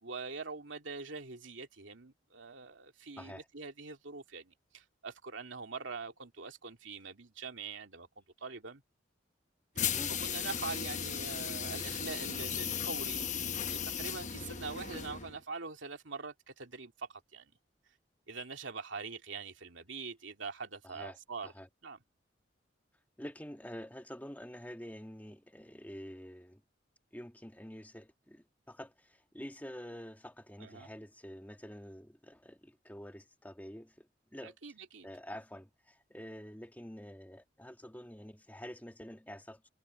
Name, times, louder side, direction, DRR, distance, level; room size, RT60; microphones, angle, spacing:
voice 1, 0.0-8.8 9.8-9.9 10.2-13.3 13.7-17.5 18.3-21.5 21.8-22.0 30.6-30.9 34.4-35.1, right 4 dB, 85° right, 2.5 m, -44 dB
sound 1, 9.8-15.4, left 8 dB, 40° left, 1.0 m, -36 dB
voice 2, 9.8-10.2 20.8-21.2 21.4-21.7 23.2-26.6 27.1-34.6 35.0-39.7, equal, 10° left, 1.5 m, -47 dB
head